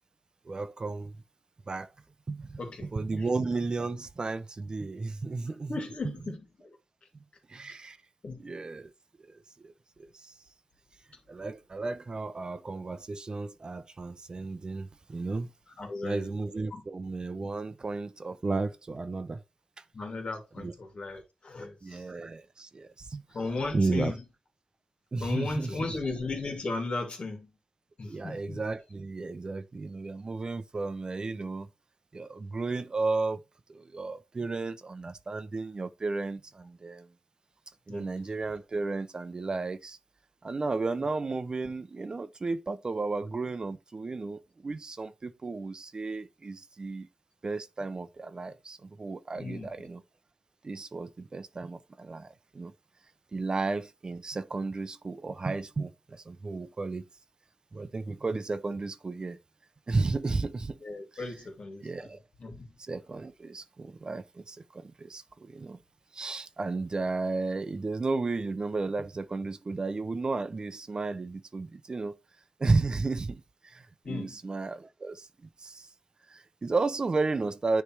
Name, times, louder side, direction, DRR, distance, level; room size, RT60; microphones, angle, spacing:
voice 1, 0.5-1.1 1.7-1.9 2.3-5.7 7.5-8.0 8.4-8.9 9.3-9.7 10.0-10.3 11.3-15.5 16.0-19.4 20.6-20.7 21.8-23.2 23.7-24.1 25.1-26.0 28.0-31.7 32.1-33.4 33.7-37.1 37.9-40.0 40.4-47.1 47.4-50.0 50.6-52.7 53.3-57.0 57.7-59.4 59.9-60.8 61.1-61.2 61.8-62.2 62.8-65.8 66.1-72.2 72.6-75.3 75.6-75.9 76.3-77.8, right 3 dB, 40° right, 0.6 m, -33 dB
voice 2, 2.6-3.3 5.7-6.5 8.2-8.5 15.8-16.3 16.7-16.8 19.9-22.0 23.3-24.2 25.2-27.5 28.0-28.6 37.9-38.2 49.4-49.9 60.8-61.9 62.4-62.7 74.0-74.4, left 3 dB, 65° left, 2.6 m, -36 dB
9.9 x 3.3 x 4.6 m
wide cardioid pair, 105°, 2 cm